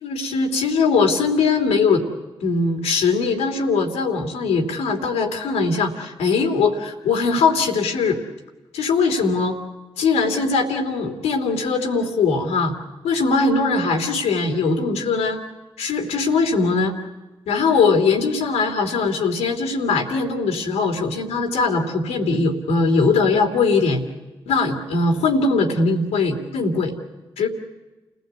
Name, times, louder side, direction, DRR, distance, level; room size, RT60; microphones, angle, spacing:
voice 1, 0.0-2.0 2.4-8.2 8.7-9.6 10.0-12.8 13.0-15.4 15.8-16.9 17.5-24.0 24.5-26.9 27.4-27.5, left 4 dB, 85° left, 4 dB, 3.1 m, -20 dB
29.5 x 17.5 x 8.3 m, 1.1 s
supercardioid pair, 45°, 11 cm